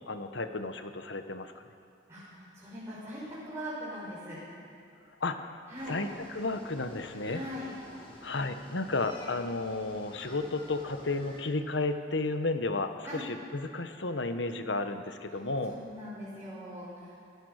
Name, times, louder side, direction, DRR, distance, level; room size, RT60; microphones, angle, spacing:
voice 1, 0.1-1.5 5.2-5.6 5.9-7.4 8.2-15.7, left 3 dB, 75° left, 8 dB, 1.3 m, -33 dB
voice 2, 2.1-4.4 5.7-6.0 7.2-7.7 13.0-13.3 15.3-15.4 15.7-17.2, equal, 15° right, -9 dB, 5.3 m, -41 dB
sound 1, 5.8-11.4, left 1 dB, 30° left, 4.6 m, -51 dB
26.5 x 16.5 x 6.6 m, 2.4 s
head